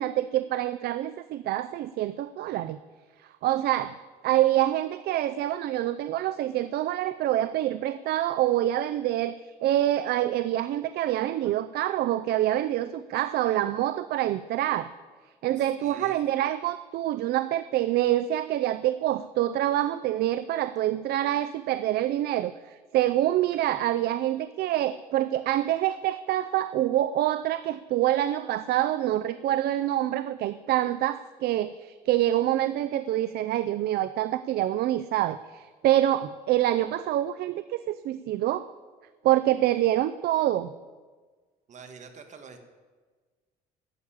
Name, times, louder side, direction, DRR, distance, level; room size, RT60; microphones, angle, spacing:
voice 1, 0.0-2.8 3.4-4.0 4.2-14.9 15.4-38.7 39.2-40.7, right 13 dB, 70° right, 14 dB, 0.5 m, -26 dB
voice 2, 15.6-16.3 41.7-42.7, right 5 dB, 45° right, 7 dB, 1.8 m, -46 dB
12.5 x 8.2 x 8.6 m, 1.4 s
cardioid pair, 110°, 17 cm